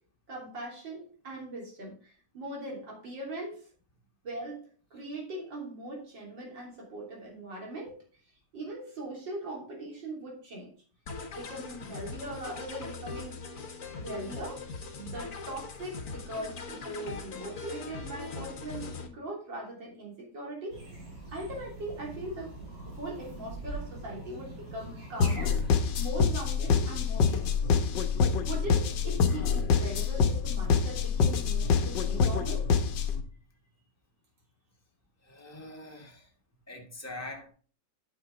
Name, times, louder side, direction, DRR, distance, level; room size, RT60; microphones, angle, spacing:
voice 1, 0.3-3.7 4.2-4.6 4.9-8.0 8.5-10.7 11.3-13.4 14.0-14.6 14.9-20.8 21.3-25.6 25.9-27.8 28.3-32.7, right 1 dB, 85° right, 3.7 m, -40 dB
sound 1, 11.1-19.1, left 4 dB, 50° left, 1.4 m, -41 dB
sound 2, 20.7-25.8, right 2 dB, 60° right, 3.3 m, -43 dB
sound 3, 25.2-33.2, left 5 dB, 75° left, 1.5 m, -26 dB
voice 2, 35.3-36.2 36.7-37.5, left 2 dB, 10° left, 1.5 m, -43 dB
8.9 x 6.1 x 3.9 m
omnidirectional pair, 2.0 m